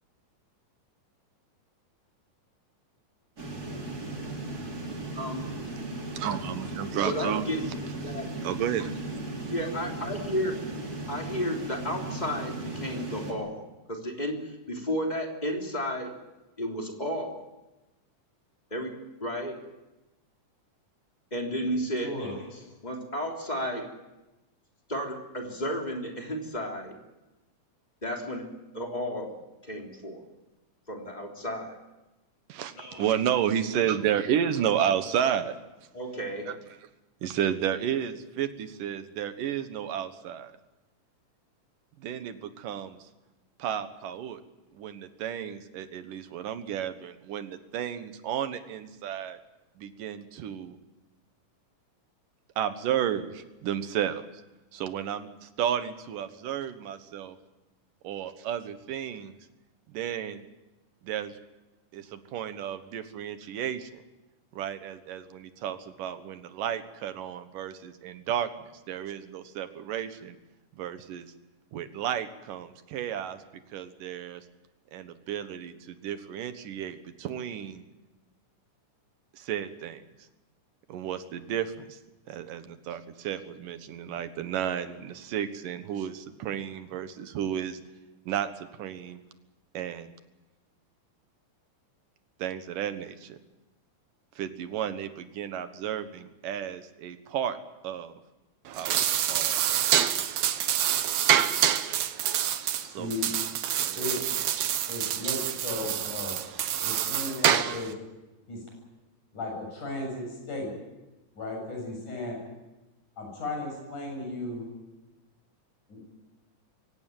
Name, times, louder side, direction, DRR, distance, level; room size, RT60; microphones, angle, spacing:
sound 1, 3.4-13.3, right 2 dB, 30° right, 3.7 m, -36 dB
voice 1, 5.1-5.5 7.0-7.7 8.0-8.3 9.5-10.6 11.1-16.1 16.6-17.4 18.7-19.6 21.3-22.2 22.8-23.9 24.9-27.0 28.0-28.5 28.7-29.4 29.6-30.2 30.9-31.8 35.9-36.5, equal, 15° left, 1 dB, 3.1 m, -32 dB
voice 2, 6.1-7.5 8.4-9.2 32.5-35.6 36.5-36.6 37.2-40.5 42.0-43.1 43.6-44.4 44.7-49.4 49.8-50.8 52.6-54.2 54.7-57.4 58.0-59.4 59.9-60.4 61.0-61.4 61.9-63.9 64.6-68.5 68.9-70.4 70.7-71.3 71.7-73.4 73.7-74.4 74.9-77.9 79.3-80.0 80.9-82.0 82.3-87.8 88.3-89.2 89.7-90.1 92.4-93.4 94.4-97.6 97.8-98.2 98.7-99.6 102.8-103.1 103.8-104.1, right 9 dB, 80° right, 10 dB, 3.0 m, -32 dB
voice 3, 22.0-22.4 32.7-33.1 102.8-103.4 104.0-104.4 104.9-106.4 106.8-107.9 108.5-108.6 109.3-110.7 111.4-112.4 113.2-114.7 115.9-116.0, left 2 dB, 65° left, 1 dB, 9.1 m, -35 dB
sound 2, 98.7-107.9, right 10 dB, 65° right, 2.0 m, -27 dB
23.5 x 17.0 x 9.3 m, 1.1 s
omnidirectional pair, 3.7 m